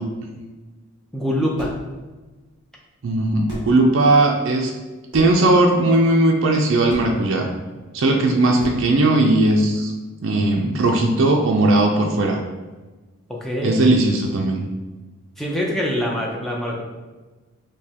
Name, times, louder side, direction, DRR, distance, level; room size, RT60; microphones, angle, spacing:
voice 1, 1.1-1.7 13.3-13.8 15.4-16.8, equal, ahead, -2 dB, 0.4 m, -24 dB
sound 1, 1.6-1.9 3.1-3.2 3.5-3.8 5.1-5.4 6.9-7.1 8.6-8.9, equal, 20° right, 1.2 m, -34 dB
voice 2, 3.0-4.7 5.1-7.5 7.9-9.9 10.2-12.4 13.6-14.6, right 2 dB, 65° right, 1 dB, 0.4 m, -18 dB
5.0 x 2.2 x 2.8 m, 1.2 s
head